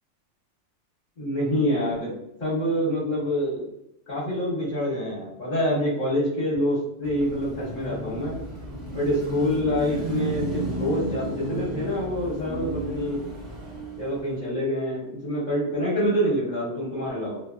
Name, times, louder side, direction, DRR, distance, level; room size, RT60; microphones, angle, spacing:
voice 1, 1.2-2.1 2.4-3.7 4.1-8.4 8.9-13.2 14.0-17.4, equal, 40° left, -10 dB, 0.9 m, -26 dB
Car passing by / Traffic noise roadway noise / Engine, 7.0-14.4, right 1 dB, 40° right, 0.9 m, -33 dB
2.7 x 2.3 x 2.5 m, 0.82 s
omnidirectional pair, 1.2 m